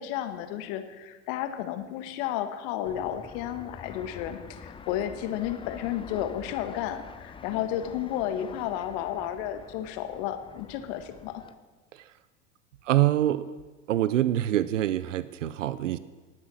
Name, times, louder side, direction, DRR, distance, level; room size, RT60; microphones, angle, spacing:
voice 1, 0.0-11.4, left 11 dB, 55° left, 9 dB, 1.6 m, -32 dB
Fixed-wing aircraft airplane, 2.8-11.5, left 6 dB, 15° left, 0.6 m, -46 dB
voice 2, 12.8-13.5 13.9-16.0, right 13 dB, 85° right, 16 dB, 0.6 m, -25 dB
19.0 x 8.6 x 6.3 m, 1.3 s
hypercardioid pair, 95°, 36 cm